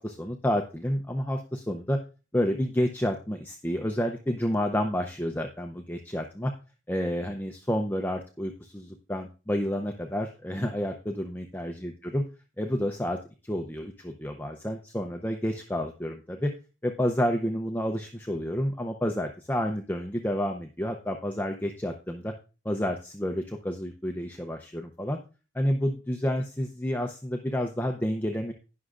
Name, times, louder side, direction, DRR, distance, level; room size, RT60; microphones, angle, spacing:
voice 1, 0.0-2.0 2.3-6.5 6.9-12.3 12.6-13.2 13.4-16.5 16.8-22.3 22.6-25.2 25.5-28.5, equal, 10° left, 3 dB, 0.5 m, -30 dB
19.0 x 6.3 x 2.5 m, 0.33 s
head